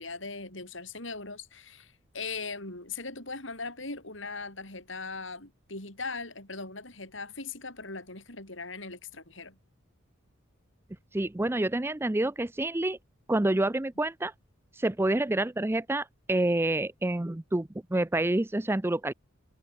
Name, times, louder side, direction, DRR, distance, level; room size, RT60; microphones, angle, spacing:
voice 1, 0.0-9.6, left 4 dB, 65° left, 7.4 m, -39 dB
voice 2, 11.1-13.0 13.3-14.3 14.8-19.1, right 1 dB, 10° right, 0.5 m, -28 dB
head